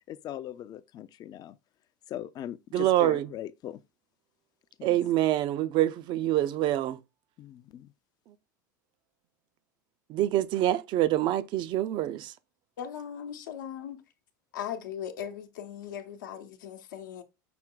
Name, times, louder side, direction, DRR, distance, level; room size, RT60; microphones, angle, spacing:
voice 1, 0.1-1.6 2.1-3.8 4.8-5.0 7.4-7.9, left 11 dB, 40° left, 0.4 m, -40 dB
voice 2, 2.7-3.3 4.8-7.0 10.1-12.3, right 13 dB, 50° right, 0.5 m, -26 dB
voice 3, 12.8-14.0 14.5-17.2, left 9 dB, 80° left, 0.8 m, -38 dB
5.9 x 2.2 x 3.8 m
hypercardioid pair, 90°, 10 cm